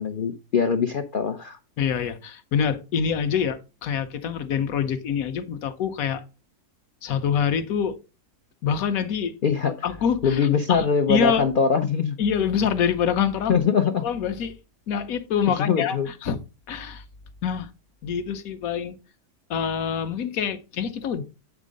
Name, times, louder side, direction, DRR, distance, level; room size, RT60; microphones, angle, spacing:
voice 1, 0.0-1.6 9.4-9.7 10.2-12.2 13.5-14.0 15.7-16.1, left 6 dB, 80° left, 0.4 m, -22 dB
voice 2, 1.8-6.2 7.0-8.0 8.6-9.4 9.6-11.4 12.2-13.6 14.0-14.6 14.9-16.4 16.7-17.0 17.4-17.7 18.0-19.0 19.5-21.2, left 7 dB, 65° left, 1.1 m, -26 dB
8.4 x 3.6 x 5.1 m
omnidirectional pair, 1.7 m